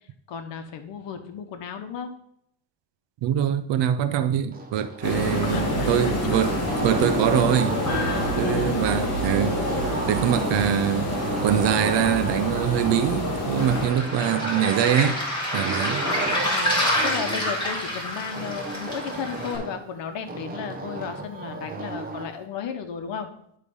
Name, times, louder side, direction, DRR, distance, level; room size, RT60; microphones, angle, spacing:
voice 1, 0.3-2.2 5.4-6.4 8.3-9.1 16.0-16.7 17.0-23.3, left 7 dB, 65° left, 1.0 m, -34 dB
voice 2, 3.2-6.5 6.8-7.8 8.4-9.6 9.8-15.2 15.5-16.1, right 9 dB, 65° right, 0.7 m, -24 dB
sound 1, 4.5-6.1 6.4-8.5 9.2-10.8 11.1-13.1 13.6-15.2 15.5-17.5 18.3-19.9 20.3-22.3, right 3 dB, 20° right, 0.9 m, -34 dB
sound 2, 5.0-13.9, equal, 35° left, 3.1 m, -27 dB
Waves surf, 13.6-19.6, left 1 dB, 10° left, 2.1 m, -28 dB
10.0 x 3.3 x 5.3 m
cardioid pair, 140°, 46 cm